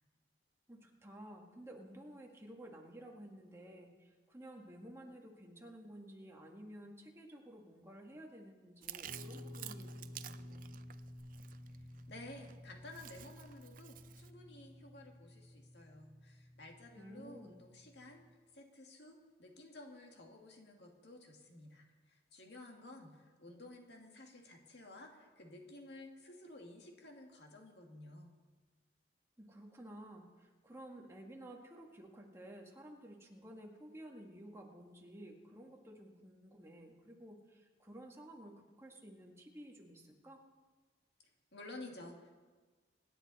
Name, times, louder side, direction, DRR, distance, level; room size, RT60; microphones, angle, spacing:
voice 1, 0.7-10.8 16.9-17.6 29.4-40.4, right 1 dB, 15° right, 0 dB, 1.7 m, -53 dB
Chewing mastication, 8.8-14.3, right 11 dB, 45° right, 0.5 m, -52 dB
Guitar, 9.0-18.3, left 1 dB, 90° right, 1.6 m, -53 dB
voice 2, 12.1-18.2 18.5-28.3 41.5-42.3, left 2 dB, 65° left, 1 dB, 2.2 m, -53 dB
25.0 x 10.0 x 4.2 m, 1.4 s
head